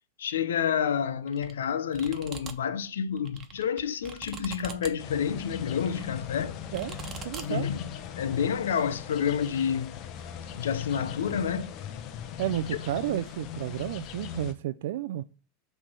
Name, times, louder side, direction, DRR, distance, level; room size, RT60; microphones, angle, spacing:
voice 1, 0.2-6.6 7.4-7.9 8.2-10.0 10.5-11.8, left 7 dB, 85° left, 0.7 m, -29 dB
sound 1, 1.3-1.5 1.9-2.5 3.1-4.9 5.7-6.1 6.7-7.4, right 7 dB, 30° right, 1.3 m, -42 dB
sound 2, 5.0-14.5, left 9 dB, 45° left, 1.0 m, -39 dB
voice 2, 7.2-7.7 12.4-15.2, right 13 dB, 75° right, 0.4 m, -31 dB
8.4 x 3.4 x 6.1 m
hypercardioid pair, 110°, 0 cm